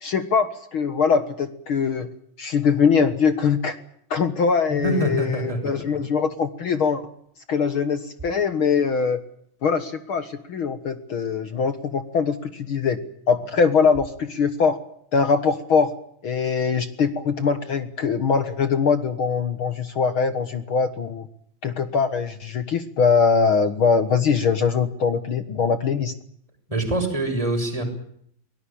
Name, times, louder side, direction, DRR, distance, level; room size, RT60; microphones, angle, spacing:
voice 1, 0.0-2.1 2.4-3.8 4.1-7.0 7.5-9.2 9.6-13.0 13.3-14.8 15.1-15.9 16.2-21.3 21.6-26.1, left 5 dB, 50° left, 11 dB, 1.6 m, -22 dB
voice 2, 4.7-5.7 26.7-27.8, right 1 dB, 10° right, 3 dB, 6.6 m, -24 dB
23.5 x 19.5 x 8.7 m, 0.68 s
omnidirectional pair, 4.0 m